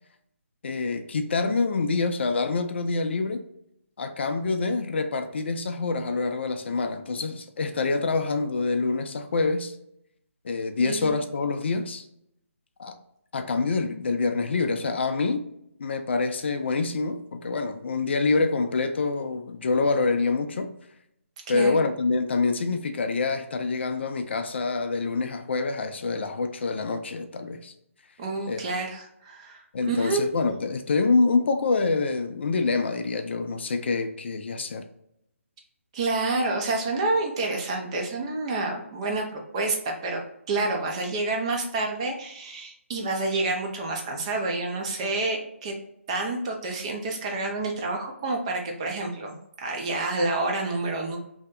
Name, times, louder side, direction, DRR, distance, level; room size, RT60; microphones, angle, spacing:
voice 1, 0.6-3.4 4.0-9.7 10.4-12.1 12.8-12.9 13.3-15.5 15.8-20.7 21.5-27.7 28.5-28.6 29.7-34.8, left 3 dB, 50° left, 0.4 m, -26 dB
voice 2, 10.8-11.1 21.5-21.8 28.2-30.3 35.9-40.2 40.5-45.7 46.1-49.3 49.6-51.2, right 2 dB, 25° right, 0.5 m, -28 dB
2.7 x 2.1 x 3.5 m
hypercardioid pair, 160°, 8 cm